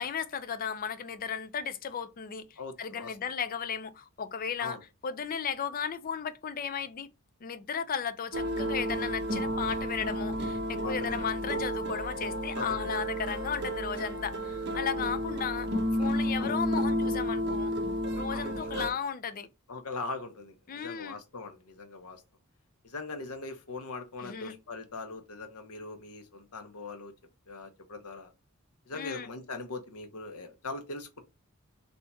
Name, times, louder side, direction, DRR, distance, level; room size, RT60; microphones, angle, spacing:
voice 1, 0.0-4.8 5.0-7.1 7.4-15.7 16.0-17.7 18.2-19.5 20.7-21.2 24.2-24.6 28.9-29.3, left 7 dB, 40° left, 0.4 m, -35 dB
voice 2, 2.6-3.2 4.6-4.8 10.8-11.4 12.6-12.8 15.9-16.1 16.4-16.6 18.3-18.9 19.7-22.2 22.8-27.1 27.5-28.3 28.9-31.2, left 3 dB, 85° left, 1.0 m, -41 dB
sound 1, 8.3-18.9, equal, 50° right, 0.9 m, -31 dB
3.5 x 2.9 x 4.1 m
head